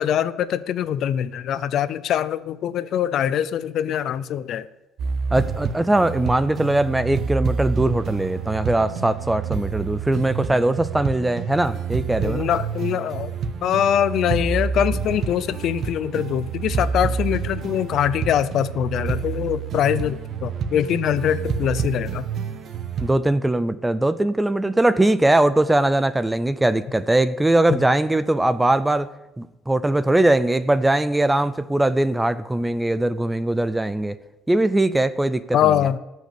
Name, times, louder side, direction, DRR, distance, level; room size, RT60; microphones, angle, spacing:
voice 1, 0.0-4.7 12.2-13.3 13.6-22.2 27.7-27.8 35.5-36.0, left 10 dB, 50° left, 16 dB, 0.5 m, -23 dB
sound 1, 5.0-23.1, right 6 dB, 40° right, 0.9 m, -28 dB
voice 2, 5.3-12.5 23.0-29.1 29.4-34.2 34.5-35.9, right 1 dB, 5° right, 14 dB, 0.4 m, -21 dB
18.5 x 6.4 x 6.8 m, 1.0 s
cardioid pair, 175°, 0 cm